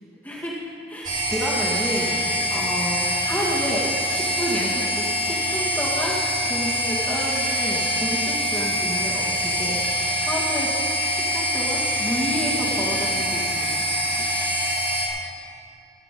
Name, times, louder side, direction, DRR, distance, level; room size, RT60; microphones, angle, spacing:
voice 1, 0.2-0.6 0.9-10.8 11.0-14.3, equal, 10° left, -6 dB, 1.8 m, -30 dB
sound 1, 1.0-15.1, equal, 50° right, 3.0 m, -24 dB
18.5 x 9.3 x 5.2 m, 2.7 s
head